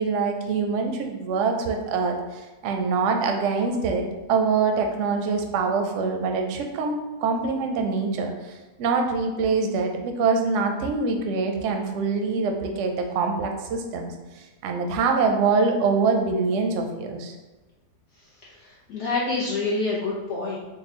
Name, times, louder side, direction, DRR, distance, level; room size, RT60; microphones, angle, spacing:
voice 1, 0.0-17.3, right 4 dB, 65° right, 3 dB, 0.8 m, -24 dB
voice 2, 18.4-20.6, left 3 dB, 60° left, -6 dB, 0.9 m, -27 dB
4.1 x 2.3 x 3.6 m, 1.2 s
omnidirectional pair, 1.6 m